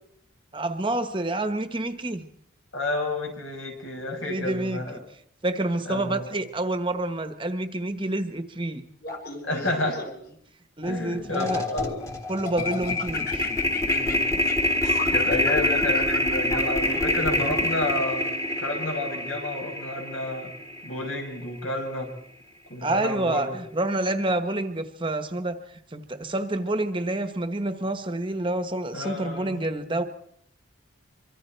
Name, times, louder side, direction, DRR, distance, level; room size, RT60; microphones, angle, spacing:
voice 1, 0.5-2.3 4.2-5.0 5.4-8.8 10.8-11.6 12.3-13.5 22.8-30.0, right 2 dB, 25° right, 9 dB, 1.1 m, -28 dB
voice 2, 2.7-5.0 5.8-6.3 9.4-10.0 10.9-11.9 13.6-14.4 14.8-18.3 18.6-20.5 20.8-22.1 22.7-23.6 28.9-29.6, left 2 dB, 80° left, 1 dB, 6.7 m, -30 dB
Laughter, 9.0-10.3 10.9-12.0 12.5-17.5, left 4 dB, 45° left, 3.9 m, -36 dB
sound 1, 10.8-11.0 11.3-21.6, left 1 dB, 15° left, 1.6 m, -26 dB
24.5 x 24.5 x 4.5 m, 0.68 s
head